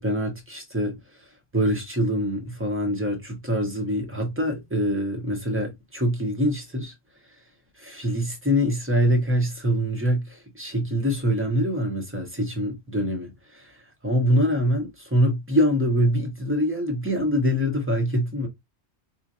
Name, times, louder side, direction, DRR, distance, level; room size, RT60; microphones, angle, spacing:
voice 1, 0.0-6.9 7.8-18.5, equal, 10° right, 0.9 m, -24 dB
4.5 x 2.4 x 2.6 m
omnidirectional pair, 1.3 m